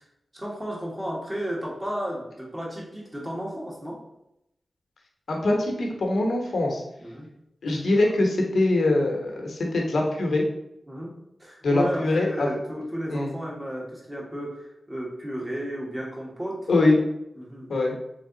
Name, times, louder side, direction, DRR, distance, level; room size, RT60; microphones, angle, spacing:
voice 1, 0.3-4.0 7.0-7.3 7.7-7.8 8.0-8.1 10.9-16.7 17.4-17.8, equal, 20° right, -4 dB, 1.3 m, -33 dB
voice 2, 5.3-6.8 7.6-10.4 11.6-12.5 13.1-13.3 16.7-17.0 17.7-18.0, left 2 dB, 80° left, 1 dB, 0.9 m, -23 dB
3.4 x 3.3 x 3.8 m, 0.83 s
wide cardioid pair, 85°, 0 cm